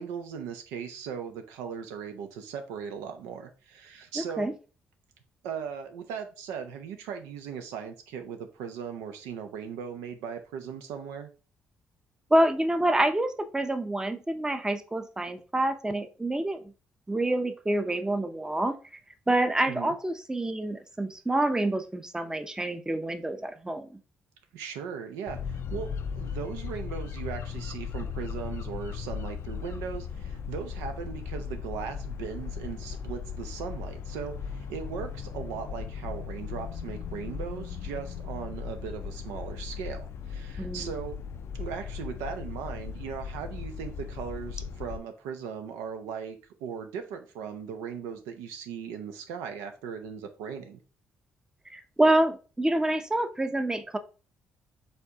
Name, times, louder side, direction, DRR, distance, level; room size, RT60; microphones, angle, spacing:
voice 1, 0.0-4.5 5.4-11.3 19.6-20.0 24.5-41.2 41.5-50.8, right 7 dB, 85° right, 7 dB, 0.5 m, -38 dB
voice 2, 4.2-4.5 12.3-16.6 17.1-18.8 19.3-23.9 40.6-40.9 51.7-54.0, right 1 dB, 15° right, 9 dB, 0.7 m, -27 dB
sound 1, 25.3-45.0, left 6 dB, 60° left, 0.4 m, -37 dB
4.3 x 3.4 x 2.8 m, 0.35 s
supercardioid pair, 55°, 5 cm